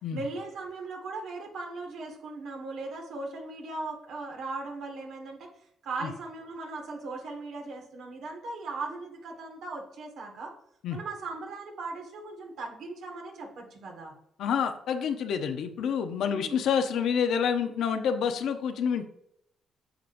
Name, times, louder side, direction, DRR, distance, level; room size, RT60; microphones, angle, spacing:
voice 1, 0.1-5.5 5.8-10.5 10.9-14.1 16.3-16.6, right 3 dB, 75° right, 2 dB, 1.8 m, -38 dB
voice 2, 14.4-19.1, left 7 dB, 75° left, 7 dB, 0.8 m, -28 dB
8.9 x 6.8 x 2.6 m, 0.75 s
cardioid pair, 90°, 0 cm